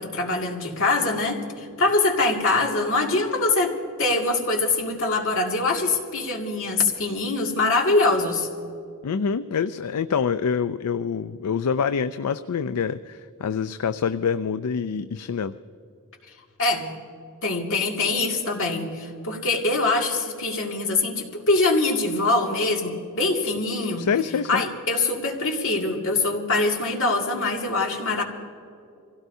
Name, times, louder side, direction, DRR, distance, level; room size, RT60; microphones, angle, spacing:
voice 1, 0.0-8.5 16.6-16.9 17.4-24.1 24.5-28.2, left 3 dB, 60° left, 0 dB, 2.2 m, -23 dB
voice 2, 9.0-15.5 23.4-23.5 24.0-24.6, left 6 dB, 90° left, 11 dB, 0.4 m, -26 dB
26.0 x 17.0 x 2.7 m, 2.5 s
head